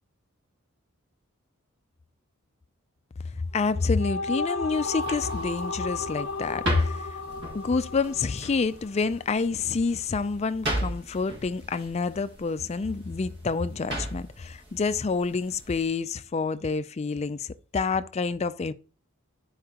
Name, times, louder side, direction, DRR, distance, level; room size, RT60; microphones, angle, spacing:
voice 1, 3.5-7.1 7.5-17.5 17.7-18.7, left 4 dB, 30° left, 0.4 m, -28 dB
sound 1, 3.8-9.1, left 3 dB, 60° left, 0.8 m, -34 dB
sound 2, 4.7-15.9, right 1 dB, 55° right, 1.9 m, -38 dB
12.0 x 4.7 x 2.9 m
head